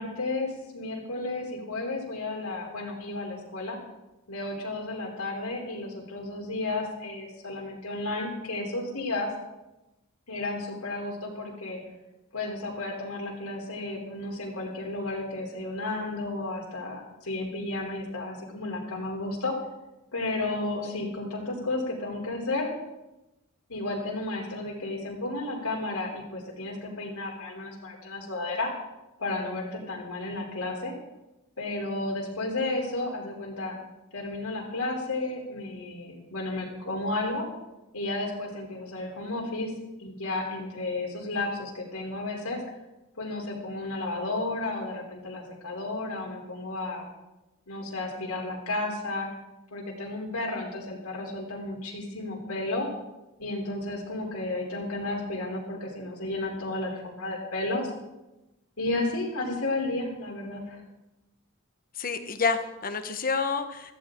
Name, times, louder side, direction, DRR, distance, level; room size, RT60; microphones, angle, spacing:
voice 1, 0.0-3.8 4.3-9.3 10.3-11.8 12.3-19.5 20.1-22.7 23.7-28.7 29.2-30.9 31.6-33.8 34.1-37.5 37.9-39.7 40.0-42.6 43.2-47.1 47.7-49.3 49.7-52.9 53.4-57.9 58.8-60.8, left 2 dB, 85° left, -2 dB, 3.4 m, -32 dB
voice 2, 62.0-63.9, left 5 dB, 40° left, 8 dB, 1.2 m, -28 dB
16.5 x 14.5 x 3.8 m, 1.0 s
head